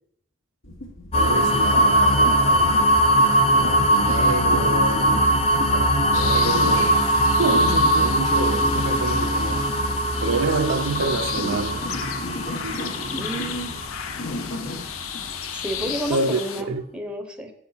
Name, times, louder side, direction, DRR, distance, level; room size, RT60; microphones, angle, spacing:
sound 1, 0.6-16.2, left 1 dB, 70° left, 1.2 m, -37 dB
sound 2, 1.1-14.9, equal, 30° left, 0.7 m, -21 dB
voice 1, 1.1-2.9 3.5-5.3 5.7-7.0 7.4-9.8 10.2-11.8 12.6-12.8 16.1-16.4 16.7-16.8, right 3 dB, 70° right, 0.5 m, -27 dB
sound 3, 6.1-16.6, left 8 dB, 85° left, 0.6 m, -34 dB
voice 2, 13.1-13.8 15.5-17.5, right 1 dB, 5° right, 0.7 m, -31 dB
8.0 x 4.2 x 5.6 m
head